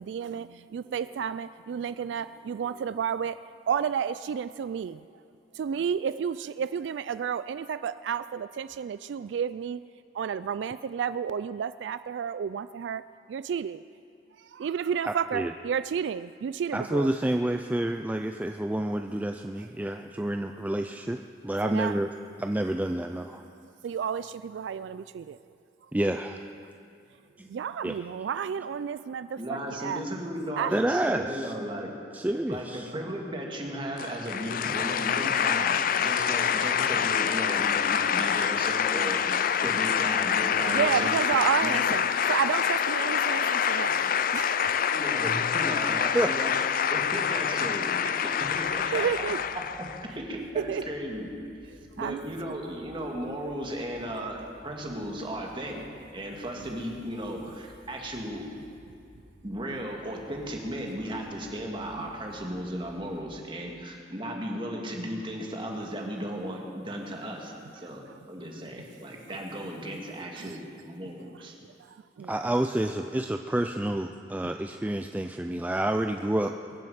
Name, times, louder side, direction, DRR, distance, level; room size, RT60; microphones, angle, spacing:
voice 1, 0.0-3.4 3.7-5.0 5.5-9.8 10.1-13.8 14.4-17.1 21.6-22.0 23.8-25.4 27.5-30.0 30.6-30.8 40.6-44.8 48.9-49.4 50.6-50.8 52.0-52.2 69.3-69.4 70.4-70.6 71.9-72.3, right 7 dB, 80° right, 14 dB, 0.3 m, -31 dB
voice 2, 15.1-15.5 16.7-22.1 22.4-23.4 25.9-26.5 27.4-27.5 27.8-28.0 30.7-31.5 32.1-32.9 46.1-46.3 72.3-76.5, right 1 dB, 10° right, 5 dB, 0.4 m, -29 dB
voice 3, 29.4-31.9 32.5-41.1 41.6-41.7 44.9-46.6 46.9-49.1 50.2-51.3 52.0-54.4 54.6-55.9 56.1-58.4 59.4-71.5, equal, 30° right, 0 dB, 2.0 m, -35 dB
sound 1, 34.0-50.0, left 8 dB, 50° left, 0.4 m, -26 dB
sound 2, 48.9-63.2, equal, 50° right, 4.7 m, -56 dB
22.0 x 7.6 x 7.9 m, 2.4 s
head